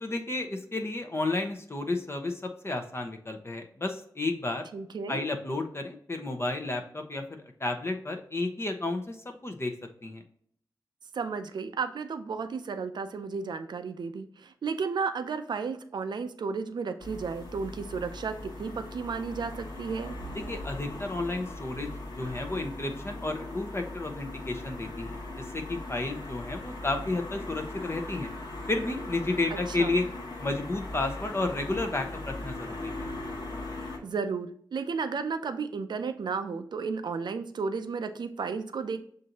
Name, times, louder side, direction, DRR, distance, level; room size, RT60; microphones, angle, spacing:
voice 1, 0.0-4.7 5.1-9.2 9.4-9.7 10.0-10.2 20.3-28.3 28.7-30.1 30.4-33.1, left 2 dB, 35° left, 4 dB, 0.8 m, -32 dB
voice 2, 4.7-5.2 11.1-20.1 29.5-30.0 34.0-39.0, right 5 dB, 75° right, 9 dB, 0.4 m, -33 dB
sound 1, 17.0-34.0, left 2 dB, 75° left, 1.3 m, -39 dB
6.4 x 2.6 x 2.8 m, 0.62 s
cardioid pair, 50°, 8 cm